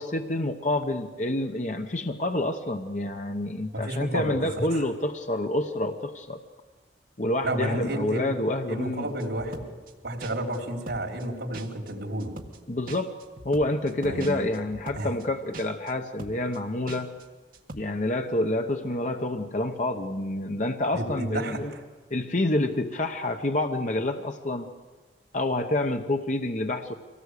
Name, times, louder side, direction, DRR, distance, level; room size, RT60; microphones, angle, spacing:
voice 1, 0.0-6.4 7.2-9.1 12.7-13.1 13.4-17.1 17.7-21.7 22.1-24.7 25.3-26.9, left 1 dB, 45° left, 5 dB, 0.9 m, -28 dB
voice 2, 3.7-4.9 7.4-8.3 8.7-9.6 10.0-12.3 14.0-14.5 14.9-15.1 20.9-21.8, right 1 dB, 80° right, 1 dB, 4.0 m, -31 dB
sound 1, 9.2-9.9 10.2-10.6 10.9-11.3 11.5-11.9 12.2-12.6 12.9-15.2 15.5-15.9 16.2-16.6 16.9-17.2 17.5-17.8, right 2 dB, 50° right, 1.7 m, -42 dB
24.5 x 18.0 x 8.3 m, 1.4 s
head